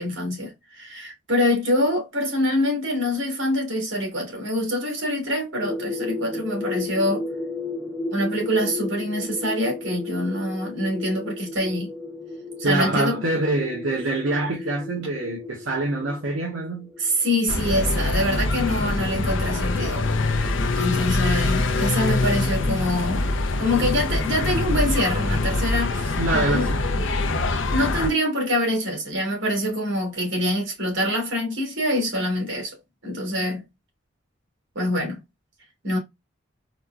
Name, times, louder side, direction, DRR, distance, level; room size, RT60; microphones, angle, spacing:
voice 1, 0.0-7.2 8.1-11.9 12.6-13.4 17.0-20.0 20.4-23.2 23.6-26.7 27.5-32.7 33.0-33.6 34.7-35.2 35.8-36.0, left 1 dB, 70° right, 1.9 m, -25 dB
sound 1, 5.6-17.3, left 3 dB, 5° left, 0.4 m, -34 dB
voice 2, 12.6-16.9 25.9-26.8, right 2 dB, 90° right, 0.7 m, -25 dB
sound 2, 17.5-28.1, left 2 dB, 70° left, 0.5 m, -24 dB
4.1 x 2.3 x 2.3 m
head